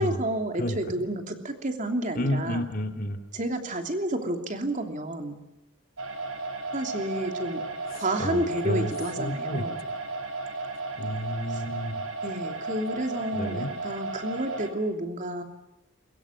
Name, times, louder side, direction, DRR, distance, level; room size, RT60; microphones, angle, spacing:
voice 1, 0.0-2.6 3.3-5.3 6.7-7.6 7.9-9.8 11.5-11.6 12.2-15.4, right 1 dB, 35° right, 5 dB, 3.0 m, -30 dB
voice 2, 2.1-3.2 7.9-8.9 9.2-9.6 11.0-12.0 13.3-13.7, equal, 40° left, 5 dB, 2.7 m, -30 dB
sound 1, 6.0-14.7, right 3 dB, 70° right, 5.4 m, -34 dB
22.5 x 22.5 x 9.7 m, 0.92 s
head